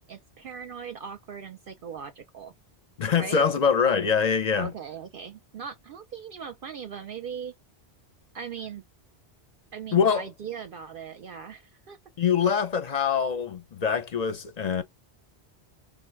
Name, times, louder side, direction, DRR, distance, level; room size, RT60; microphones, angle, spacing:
voice 1, 0.1-2.5 3.2-3.4 4.6-7.5 8.3-8.8 9.7-12.0, right 7 dB, 60° right, 0.6 m, -39 dB
voice 2, 3.0-4.7 9.9-10.3 12.2-14.8, left 6 dB, 45° left, 0.6 m, -24 dB
3.8 x 2.1 x 4.4 m
omnidirectional pair, 1.1 m